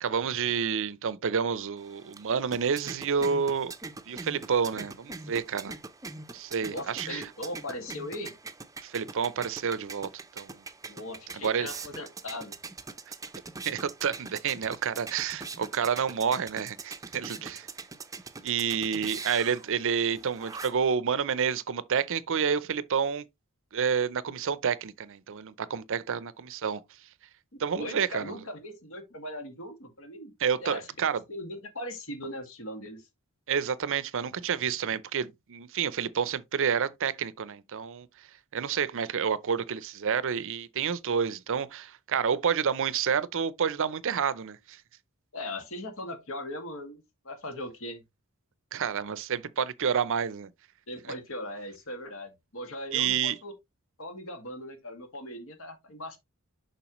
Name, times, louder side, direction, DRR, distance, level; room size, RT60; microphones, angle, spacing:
voice 1, 0.0-3.7 4.1-5.8 6.3-7.3 8.8-10.1 10.4-10.6 11.3-11.7 13.6-17.7 18.4-23.2 23.7-26.8 27.6-28.4 30.4-31.2 33.5-38.1 38.5-44.8 48.7-50.5 52.9-53.4, right 7 dB, 65° right, 0.6 m, -29 dB
sound 1, 1.8-21.0, right 4 dB, 15° right, 0.6 m, -43 dB
voice 2, 6.7-8.3 10.9-12.6 17.4-17.5 27.5-30.3 30.6-30.9 31.3-33.1 45.3-48.0 50.9-53.5 54.0-56.2, left 1 dB, 65° left, 2.0 m, -39 dB
7.0 x 5.5 x 3.0 m
head